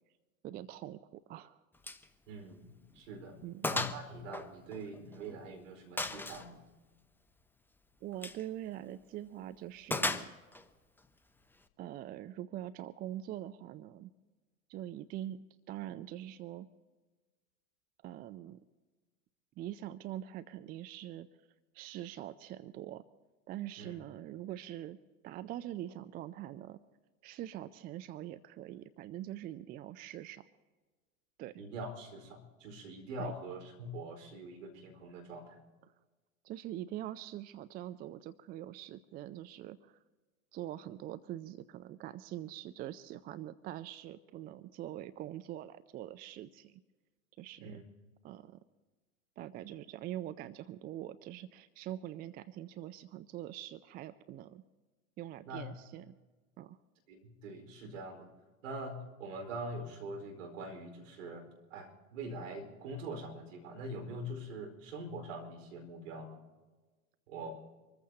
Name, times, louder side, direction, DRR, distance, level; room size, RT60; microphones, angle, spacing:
voice 1, 0.4-1.6 3.4-3.7 8.0-10.3 11.8-14.1 14.7-16.7 18.0-18.6 19.6-21.3 21.7-23.0 23.5-25.0 25.2-26.8 27.2-30.4 31.4-31.6 33.2-33.3 35.8-35.9 36.4-40.0 40.5-46.8 47.4-47.8 48.2-48.6 49.4-54.6 55.2-56.1 56.6-56.8, right 13 dB, 25° right, 14 dB, 0.4 m, -44 dB
Gunshot gunfire, 1.8-2.1 2.4-2.5 3.0-3.1 3.6-4.0 4.3-5.3 6.0-6.5 8.1-8.4 9.9-10.6, left 2 dB, 5° left, 0.7 m, -35 dB
voice 2, 2.3-3.4 3.7-6.6 23.8-23.9 31.6-35.6 47.6-47.8 55.4-55.7 57.1-58.3 58.6-66.4 67.3-67.6, right 1 dB, 65° right, 4 dB, 4.8 m, -44 dB
25.5 x 14.5 x 2.9 m, 1.3 s
figure-of-eight pair, 95°, 42 cm